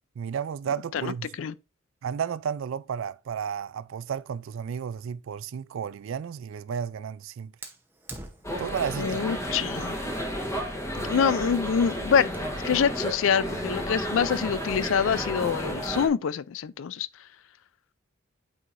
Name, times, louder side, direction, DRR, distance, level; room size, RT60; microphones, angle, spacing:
voice 1, 0.2-1.4 2.0-7.5 8.6-9.2, right 7 dB, 75° right, 0.3 m, -32 dB
Fire, 7.6-12.6, right 2 dB, 10° right, 0.7 m, -48 dB
sound 1, 8.4-16.1, equal, 15° left, 1.1 m, -32 dB
voice 2, 9.0-10.0 11.0-17.1, left 7 dB, 70° left, 0.4 m, -26 dB
8.5 x 4.7 x 2.5 m
head